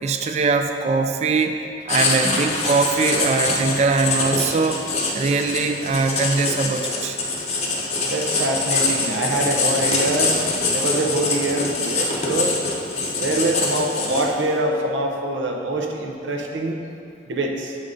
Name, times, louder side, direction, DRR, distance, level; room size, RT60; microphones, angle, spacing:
voice 1, 0.0-4.8 5.1-7.2, right 4 dB, 35° right, 6 dB, 0.3 m, -21 dB
Writing, 1.9-14.5, left 3 dB, 35° left, 0.7 m, -24 dB
voice 2, 8.0-10.4 10.7-12.5 13.2-16.8 17.3-17.8, right 1 dB, 90° right, 2 dB, 0.7 m, -24 dB
7.6 x 3.9 x 3.7 m, 2.7 s
head